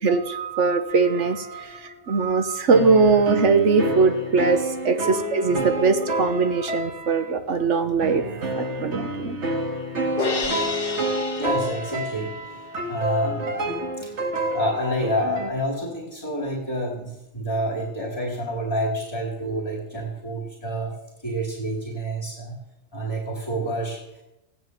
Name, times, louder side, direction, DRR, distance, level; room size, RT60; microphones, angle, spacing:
voice 1, 0.0-8.2 8.6-9.4, right 4 dB, 85° right, 9 dB, 1.5 m, -21 dB
sound 1, 0.9-2.0 2.7-7.4 8.0-15.5, right 1 dB, 70° right, 2.1 m, -29 dB
Crash cymbal, 10.2-12.5, left 4 dB, 50° left, 1.7 m, -30 dB
voice 2, 11.4-12.3 12.9-14.2 14.5-20.9 21.2-22.6 22.9-24.2, equal, 20° left, 0 dB, 2.4 m, -28 dB
15.5 x 9.6 x 7.6 m, 0.93 s
omnidirectional pair, 1.2 m